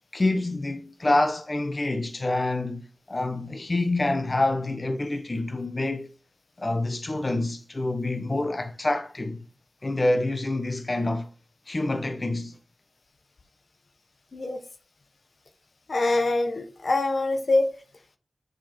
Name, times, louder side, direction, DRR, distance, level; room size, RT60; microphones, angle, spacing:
voice 1, 0.1-6.1 6.6-9.4 9.8-11.3 11.7-12.6, left 2 dB, 50° left, 1.1 m, -27 dB
voice 2, 15.9-17.7, left 2 dB, 70° left, 1.2 m, -24 dB
7.3 x 5.6 x 4.5 m
cardioid pair, 40°, 0 cm